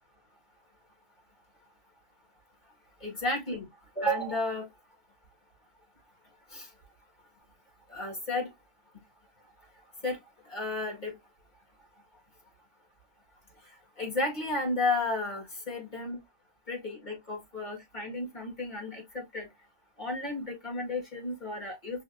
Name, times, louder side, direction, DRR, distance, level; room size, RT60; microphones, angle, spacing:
voice 1, 3.0-3.7 4.0-4.7 6.5-6.7 7.9-8.5 10.0-10.2 10.5-11.1 14.0-16.2 16.7-19.5 20.0-22.0, left 2 dB, 30° left, 1.9 m, -32 dB
5.5 x 2.7 x 2.6 m
omnidirectional pair, 1.6 m